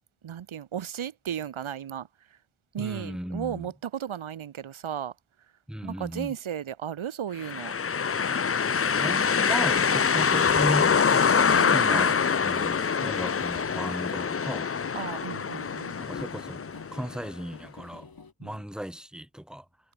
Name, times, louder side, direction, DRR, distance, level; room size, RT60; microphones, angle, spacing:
voice 1, 0.2-2.1 2.7-5.1 5.8-7.7 11.6-12.3 14.9-16.0 18.4-18.6, right 9 dB, 85° right, 1.3 m, -35 dB
voice 2, 2.8-3.7 5.7-6.4 9.0-14.7 16.0-16.6 16.9-18.1 18.4-19.7, equal, ahead, 1.9 m, -36 dB
sound 1, 7.4-17.2, left 6 dB, 30° left, 0.6 m, -25 dB
sound 2, 11.6-18.3, left 4 dB, 50° left, 3.9 m, -47 dB
cardioid pair, 70°, 47 cm